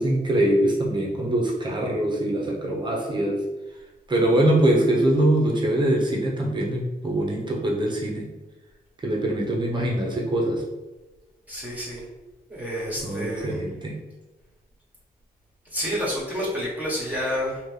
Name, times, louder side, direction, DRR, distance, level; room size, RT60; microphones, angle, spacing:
voice 1, 0.0-3.4 4.1-8.2 9.0-10.6 13.0-14.0, right 1 dB, 30° right, -2 dB, 1.0 m, -23 dB
voice 2, 11.5-12.0 12.5-13.6 15.7-17.6, equal, 10° right, -6 dB, 1.4 m, -29 dB
4.2 x 3.0 x 3.4 m, 1.1 s
wide cardioid pair, 120°, 17 cm